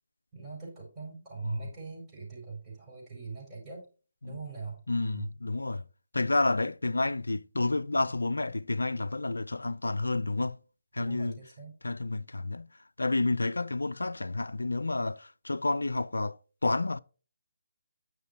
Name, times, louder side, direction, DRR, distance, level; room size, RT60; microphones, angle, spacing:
voice 1, 0.3-3.8 4.2-5.3 11.0-11.7, right 4 dB, 15° right, 4.7 m, -42 dB
voice 2, 4.9-5.8 6.1-10.6 10.9-11.4 11.8-12.7 13.0-16.4 16.6-17.0, left 2 dB, 75° left, 0.3 m, -30 dB
9.5 x 6.5 x 2.8 m
figure-of-eight pair, 145°, 0 cm